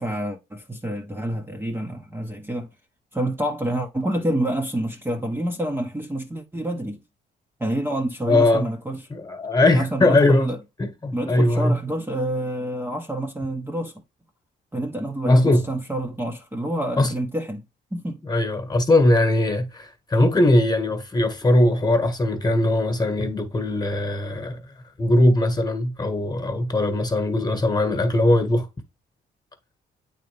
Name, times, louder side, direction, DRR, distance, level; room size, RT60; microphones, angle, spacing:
voice 1, 0.0-2.7 3.1-7.0 7.6-9.0 9.7-10.6 11.1-14.0 14.7-17.6 17.9-18.2, right 1 dB, 10° right, 1.0 m, -28 dB
voice 2, 8.2-8.7 9.1-10.5 10.8-11.7 15.3-15.6 17.0-17.1 18.3-24.6 25.0-28.7, left 1 dB, 20° left, 1.5 m, -20 dB
8.4 x 4.0 x 3.4 m
cardioid pair, 90°, 20 cm